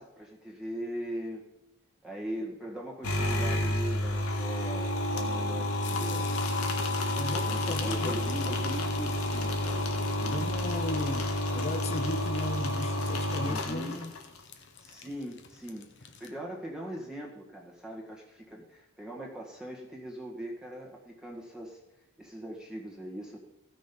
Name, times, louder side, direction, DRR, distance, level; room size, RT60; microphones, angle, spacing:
voice 1, 0.0-1.4 2.0-6.4 7.4-10.5 13.4-14.1 14.8-21.8 22.2-23.4, right 1 dB, 5° right, 1.7 m, -41 dB
sound 1, 3.0-14.4, left 1 dB, 85° left, 1.8 m, -30 dB
sound 2, 5.8-16.3, left 6 dB, 55° left, 1.2 m, -47 dB
voice 2, 7.2-8.2 10.2-14.1, left 1 dB, 30° left, 0.7 m, -36 dB
16.0 x 6.4 x 5.3 m
head